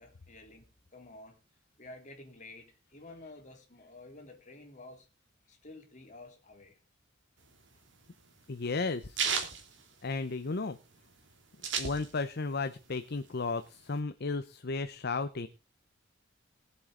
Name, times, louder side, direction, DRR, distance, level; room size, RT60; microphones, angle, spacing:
voice 1, 0.0-1.4 1.8-5.1 5.5-6.8, left 2 dB, 40° left, 2 dB, 3.2 m, -51 dB
sound 1, 7.4-10.6 10.9-11.0 11.2-12.5 12.8-14.0, right 6 dB, 65° right, 2.7 m, -34 dB
voice 2, 8.5-9.2 10.0-10.8 11.8-15.5, left 3 dB, 55° left, 11 dB, 0.7 m, -34 dB
20.5 x 7.7 x 3.8 m, 0.30 s
head